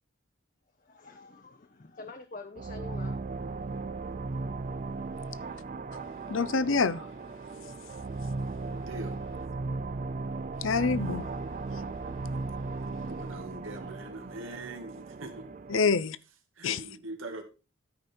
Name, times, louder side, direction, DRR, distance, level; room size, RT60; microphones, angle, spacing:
voice 1, 0.8-3.2, left 3 dB, 40° left, 0.7 m, -46 dB
sound 1, 2.5-15.9, right 3 dB, 40° right, 0.4 m, -36 dB
voice 2, 6.3-7.1 10.6-11.3 15.7-16.2 16.6-16.8, left 4 dB, 80° left, 0.6 m, -26 dB
voice 3, 8.8-9.2 12.9-15.8 16.6-17.4, right 2 dB, 85° right, 1.8 m, -42 dB
13.0 x 5.3 x 4.3 m
head